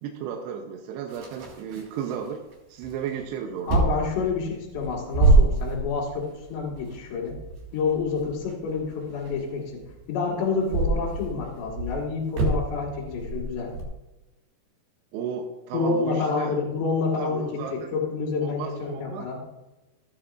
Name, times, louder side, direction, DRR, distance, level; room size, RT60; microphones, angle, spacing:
voice 1, 0.0-2.4 2.7-3.9 15.1-16.6 17.2-17.9 18.4-19.3, right 7 dB, 90° right, 3 dB, 3.0 m, -34 dB
sound 1, 1.1-2.5 2.8-3.2 3.7-10.0 10.6-13.8, right 2 dB, 70° right, 4.4 m, -26 dB
voice 2, 3.7-7.4 7.7-9.8 10.1-13.7 15.7-19.4, left 4 dB, 85° left, -3 dB, 4.0 m, -28 dB
14.5 x 11.0 x 2.5 m, 1.1 s
omnidirectional pair, 4.8 m